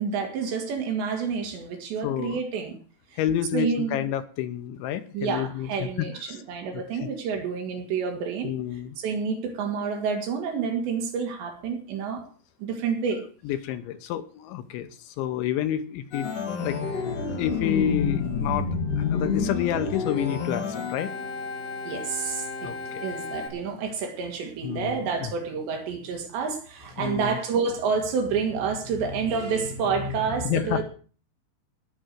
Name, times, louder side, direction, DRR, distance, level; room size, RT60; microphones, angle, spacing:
voice 1, 0.0-2.8 3.1-3.2 3.5-4.0 5.1-8.5 9.0-12.2 12.6-13.3 21.8-22.7 23.0-30.8, right 5 dB, 65° right, 4 dB, 4.3 m, -29 dB
voice 2, 2.0-2.4 3.2-6.4 6.7-7.1 8.4-9.0 13.4-16.3 16.6-16.8 17.4-18.7 19.0-21.1 22.6-23.0 24.6-25.3 27.0-27.4 30.4-30.8, left 11 dB, 75° left, 10 dB, 3.1 m, -29 dB
Organ, 16.1-23.5, left 5 dB, 50° left, 3.4 m, -29 dB
18.5 x 6.3 x 7.7 m, 0.41 s
omnidirectional pair, 5.7 m